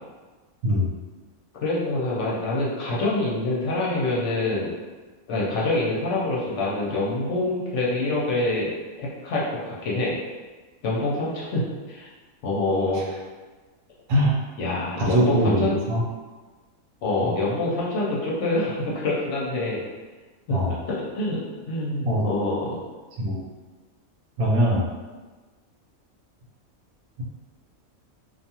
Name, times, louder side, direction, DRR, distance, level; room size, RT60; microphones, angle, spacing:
voice 1, 1.5-4.7 5.3-8.7 9.0-10.1 10.8-12.1 12.4-13.0 14.6-15.7 17.0-19.8 20.5-22.8, left 2 dB, 65° left, -5 dB, 0.8 m, -26 dB
voice 2, 15.0-16.0 20.5-20.7 22.0-22.2 23.2-23.5 24.4-24.9, equal, 85° right, -3 dB, 1.1 m, -22 dB
2.4 x 2.3 x 2.8 m, 1.3 s
omnidirectional pair, 1.5 m